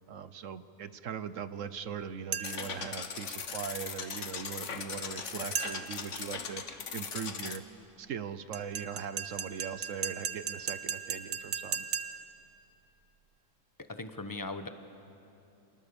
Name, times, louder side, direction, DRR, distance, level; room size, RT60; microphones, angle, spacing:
voice 1, 0.1-7.6 8.0-11.9, right 7 dB, 60° right, 13 dB, 1.1 m, -40 dB
sound 1, 2.3-2.8 5.5-6.1 8.5-12.4, right 8 dB, 80° right, 1.5 m, -37 dB
sound 2, 2.4-7.6, left 6 dB, 50° left, 1.5 m, -39 dB
voice 2, 13.8-14.7, left 2 dB, 15° left, 8 dB, 1.0 m, -39 dB
30.0 x 26.0 x 7.0 m, 2.9 s
omnidirectional pair, 1.6 m